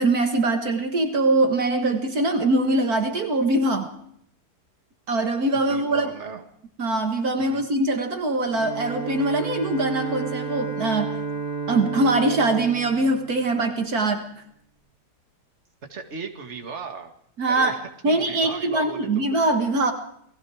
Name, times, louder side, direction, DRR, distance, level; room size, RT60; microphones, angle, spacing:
voice 1, 0.0-3.9 5.1-6.1 6.8-11.2 11.7-14.3 17.4-17.7 18.0-19.9, right 2 dB, 65° right, 6 dB, 2.1 m, -22 dB
voice 2, 5.5-6.4 7.4-7.7 15.9-17.1 17.5-19.3, right 5 dB, 45° right, 5 dB, 2.2 m, -37 dB
Bowed string instrument, 8.5-14.1, right 4 dB, 30° left, 2.7 m, -32 dB
29.0 x 19.5 x 4.9 m, 0.70 s
omnidirectional pair, 1.7 m